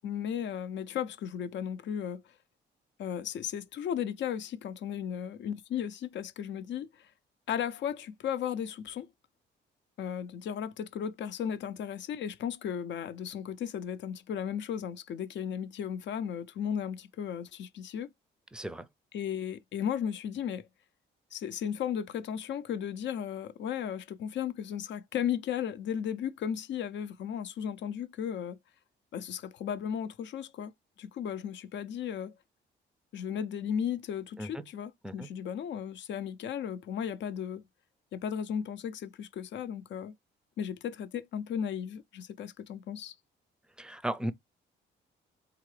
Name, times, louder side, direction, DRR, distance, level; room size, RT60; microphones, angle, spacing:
voice 1, 0.0-2.2 3.0-7.1 7.5-9.1 10.0-18.1 19.1-20.7 21.3-28.6 29.1-30.7 31.0-32.3 33.1-37.6 38.1-40.1 40.6-43.1, left 8 dB, 65° left, 0.6 m, -35 dB
voice 2, 18.5-18.9 34.4-34.7 35.0-35.3 43.8-44.3, right 1 dB, 5° right, 0.5 m, -36 dB
3.7 x 3.7 x 3.2 m
cardioid pair, 90°, 20 cm